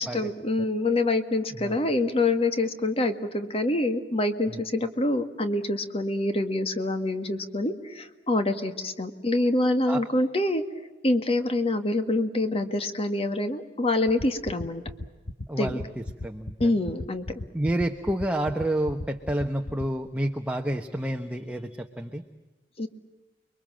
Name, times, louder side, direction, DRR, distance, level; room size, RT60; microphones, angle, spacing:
voice 1, 0.0-10.6 11.0-14.8 15.6-15.7 16.6-17.3 22.8-22.9, left 2 dB, 35° left, 8 dB, 1.9 m, -26 dB
sound 1, 14.1-20.1, left 1 dB, 70° left, 1.4 m, -34 dB
voice 2, 15.5-15.8 16.2-16.7 17.5-22.2, right 1 dB, 10° right, 4 dB, 1.1 m, -29 dB
29.5 x 23.0 x 7.6 m, 1.2 s
head